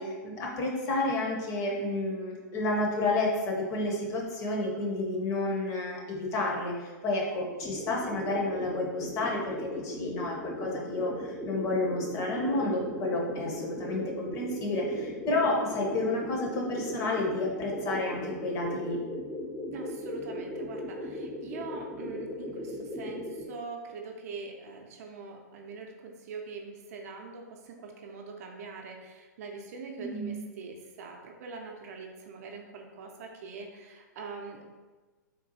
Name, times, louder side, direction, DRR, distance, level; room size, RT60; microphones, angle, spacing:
voice 1, 0.0-19.0 30.0-30.4, left 2 dB, 30° left, -1 dB, 0.7 m, -30 dB
sound 1, 7.6-23.5, left 1 dB, 5° left, 0.4 m, -38 dB
voice 2, 19.7-34.6, right 4 dB, 55° right, 2 dB, 0.5 m, -43 dB
3.7 x 2.3 x 2.7 m, 1.3 s
hypercardioid pair, 120°, 10 cm